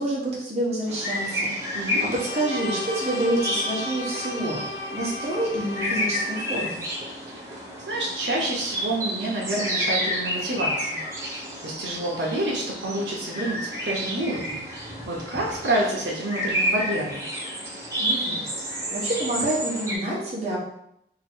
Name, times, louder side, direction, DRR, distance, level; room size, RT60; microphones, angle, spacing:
voice 1, 0.0-1.8 2.2-4.6 4.9-6.8 18.0-20.6, right 1 dB, 35° right, -5 dB, 1.0 m, -28 dB
sound 1, 0.9-20.0, equal, 15° right, 0.8 m, -30 dB
voice 2, 1.7-2.2 7.4-7.5 7.9-11.0 11.3-17.2, right 1 dB, 85° right, -3 dB, 0.9 m, -28 dB
Bowed string instrument, 1.9-6.6, left 1 dB, 80° left, 0.5 m, -35 dB
2.9 x 2.7 x 4.4 m, 0.77 s
head